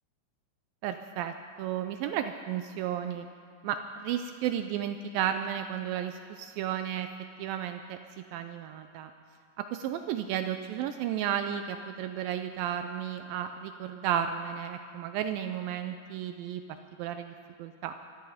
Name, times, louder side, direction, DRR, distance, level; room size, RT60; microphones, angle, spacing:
voice 1, 0.8-3.3 3.6-7.1 7.4-8.0 8.3-9.1 9.6-16.6 17.0-17.3 17.6-17.9, right 10 dB, 90° right, 8 dB, 2.0 m, -33 dB
19.5 x 13.5 x 5.0 m, 2.3 s
omnidirectional pair, 4.7 m